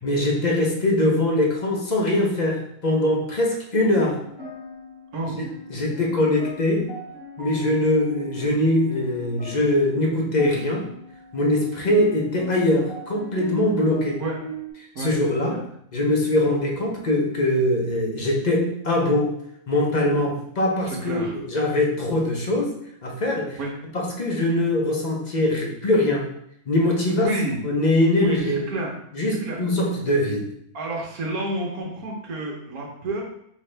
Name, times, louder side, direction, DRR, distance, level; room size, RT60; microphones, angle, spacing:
voice 1, 0.0-4.2 5.4-6.9 7.4-10.9 11.3-14.2 15.0-15.6 15.9-19.4 19.7-23.6 23.9-26.3 26.7-27.3 27.6-28.7 29.1-30.5, left 1 dB, 35° left, -1 dB, 0.7 m, -22 dB
sound 1, 3.8-14.7, right 1 dB, 5° left, 1.4 m, -38 dB
voice 2, 20.8-21.4 23.6-23.7 27.2-27.6 28.2-28.9 29.4-29.6 30.7-33.2, right 2 dB, 70° right, -1 dB, 1.5 m, -29 dB
5.6 x 2.8 x 3.3 m, 0.71 s
omnidirectional pair, 1.6 m